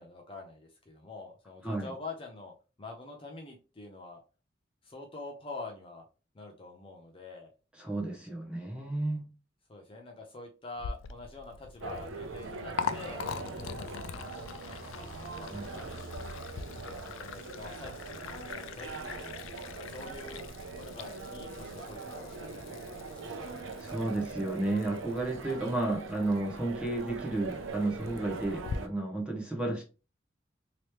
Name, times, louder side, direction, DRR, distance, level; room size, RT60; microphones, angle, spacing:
voice 1, 0.0-2.5 2.8-4.2 4.8-6.0 6.3-7.5 9.7-16.1 16.7-19.3 19.7-20.5 20.8-23.5, left 3 dB, 30° left, 0.5 m, -46 dB
voice 2, 7.8-9.3 15.5-15.6 23.8-29.8, right 2 dB, 5° right, 0.9 m, -32 dB
Liquid, 10.7-28.8, left 6 dB, 85° left, 0.3 m, -43 dB
sound 1, 11.8-28.9, right 3 dB, 80° right, 0.5 m, -42 dB
3.0 x 2.9 x 3.2 m
head